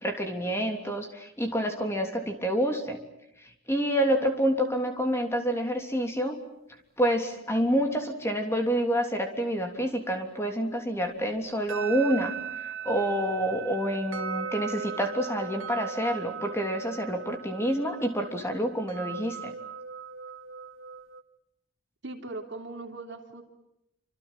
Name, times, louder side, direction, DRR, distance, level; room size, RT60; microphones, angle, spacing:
voice 1, 0.0-3.0 3.4-6.4 7.0-19.5, equal, 10° left, 4 dB, 3.2 m, -28 dB
sound 1, 11.5-21.2, right 7 dB, 70° right, 2.2 m, -38 dB
voice 2, 22.0-23.4, right 2 dB, 55° right, 3 dB, 3.3 m, -39 dB
28.5 x 26.5 x 7.5 m, 0.84 s
head